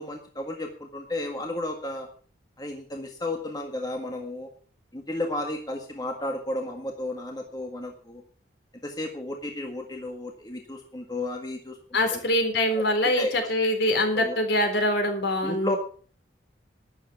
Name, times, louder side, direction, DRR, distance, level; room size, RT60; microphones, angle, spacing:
voice 1, 0.0-2.1 2.6-4.5 4.9-8.2 8.8-11.8 12.1-12.2 12.7-12.8 13.2-13.3 14.1-14.4 15.4-15.8, left 1 dB, 20° left, 2 dB, 1.7 m, -33 dB
voice 2, 11.9-15.8, left 1 dB, 60° left, 5 dB, 3.9 m, -24 dB
12.5 x 10.5 x 6.0 m, 0.42 s
head